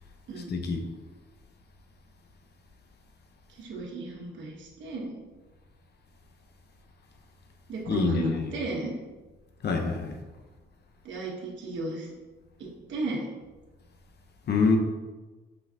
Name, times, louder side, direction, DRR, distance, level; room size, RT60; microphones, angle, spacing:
voice 1, 0.5-0.8 7.9-8.5 9.6-10.2 14.5-14.8, left 4 dB, 55° left, 4 dB, 1.0 m, -26 dB
voice 2, 3.5-5.2 7.7-8.9 11.0-12.1 12.6-13.3, right 2 dB, 70° right, -2 dB, 1.3 m, -34 dB
5.9 x 5.6 x 2.9 m, 1.2 s
cardioid pair, 90°, 20 cm